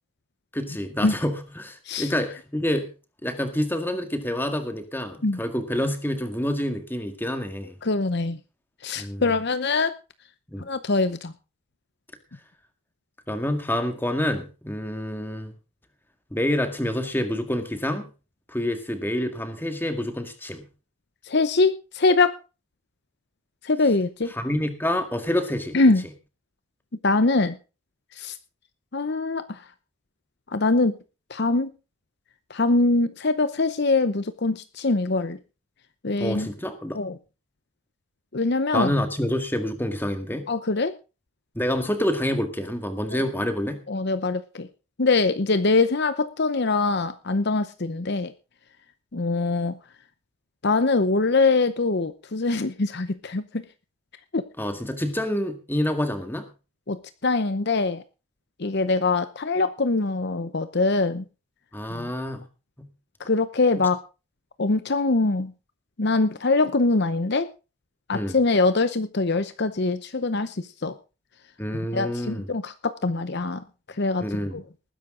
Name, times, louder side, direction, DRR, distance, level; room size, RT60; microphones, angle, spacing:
voice 1, 0.5-2.9 3.2-7.7 9.0-9.2 10.5-10.7 13.3-15.5 16.3-18.1 18.5-20.6 24.3-25.8 36.2-37.0 38.7-40.5 41.6-43.8 54.6-56.5 61.7-62.4 62.8-62.9 68.1-68.4 71.6-72.5 74.2-74.6, left 1 dB, 10° left, 7 dB, 1.9 m, -27 dB
voice 2, 7.8-8.4 8.8-9.9 10.7-11.3 21.2-22.4 23.6-24.3 25.7-26.0 27.0-27.6 28.1-28.4 28.9-29.6 30.5-30.9 31.3-31.7 32.5-35.4 36.0-36.5 36.9-37.2 38.3-38.9 40.5-40.9 43.1-43.3 43.9-44.7 45.0-48.3 49.1-49.7 50.6-53.6 54.3-54.4 56.9-58.0 58.6-61.2 61.9-62.1 63.2-64.0 64.6-65.5 66.0-67.5 68.1-70.9 71.9-73.6 74.0-74.6, left 3 dB, 50° left, 12 dB, 0.8 m, -23 dB
19.5 x 10.5 x 3.8 m, 0.32 s
head